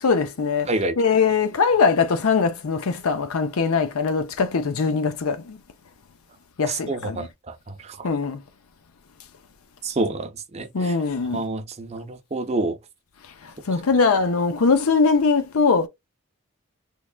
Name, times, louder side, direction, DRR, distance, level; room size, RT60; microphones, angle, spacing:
voice 1, 0.0-0.7 1.0-5.6 6.6-7.3 8.0-8.4 10.7-11.4 13.7-15.9, left 5 dB, 80° left, 0.6 m, -21 dB
voice 2, 0.7-1.0 6.7-7.3 7.8-8.1 9.8-10.9 11.3-12.8, right 2 dB, 30° right, 0.6 m, -27 dB
3.6 x 3.1 x 2.2 m
head